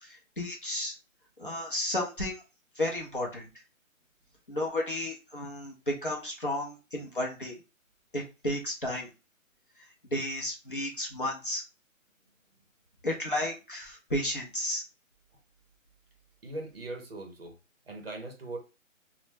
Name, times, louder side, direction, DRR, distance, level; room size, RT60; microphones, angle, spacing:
voice 1, 0.0-1.0 1.4-2.4 2.8-3.5 4.5-7.6 8.1-9.1 10.1-11.6 13.0-14.8, left 1 dB, 40° left, 0.5 m, -33 dB
voice 2, 16.4-17.6 17.9-18.6, right 2 dB, 45° right, 0.6 m, -40 dB
2.0 x 2.0 x 3.1 m
hypercardioid pair, 170°, 41 cm